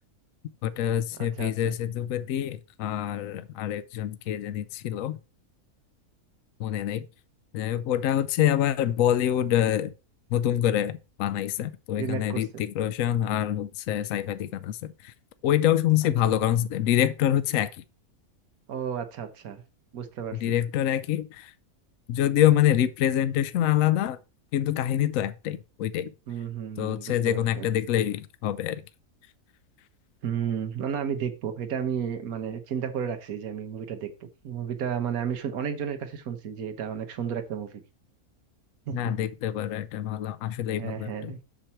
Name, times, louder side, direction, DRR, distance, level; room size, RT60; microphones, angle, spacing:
voice 1, 0.6-5.2 6.6-7.1 7.5-9.9 10.3-15.1 15.4-17.7 20.4-21.5 22.1-24.2 24.5-26.1 26.8-28.8 38.9-41.3, left 11 dB, 70° left, 0.9 m, -26 dB
voice 2, 1.1-1.8 12.0-12.6 18.7-19.6 19.9-20.5 26.3-27.7 30.2-37.8 38.9-39.1 40.8-41.4, right 8 dB, 70° right, 1.5 m, -33 dB
7.8 x 6.0 x 4.4 m
omnidirectional pair, 1.6 m